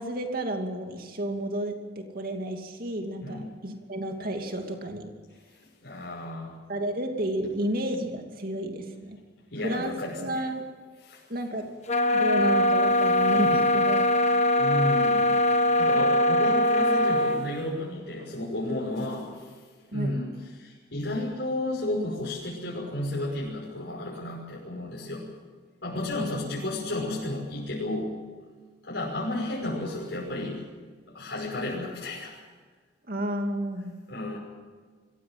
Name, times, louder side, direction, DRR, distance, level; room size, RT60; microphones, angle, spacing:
voice 1, 0.0-5.1 6.7-9.2 9.6-10.6 11.3-11.7 12.1-14.1 19.9-20.1 26.2-26.7 33.1-33.9, right 1 dB, 50° right, 4 dB, 2.6 m, -31 dB
voice 2, 5.8-6.5 9.5-10.4 11.0-11.2 12.9-13.4 14.5-19.6 19.9-20.3 20.6-25.3 25.8-28.1 28.8-32.4 34.1-34.4, left 1 dB, 75° left, -5 dB, 5.8 m, -32 dB
sound 1, 11.9-17.4, left 1 dB, 35° left, 1.5 m, -22 dB
25.0 x 16.0 x 7.9 m, 1.5 s
head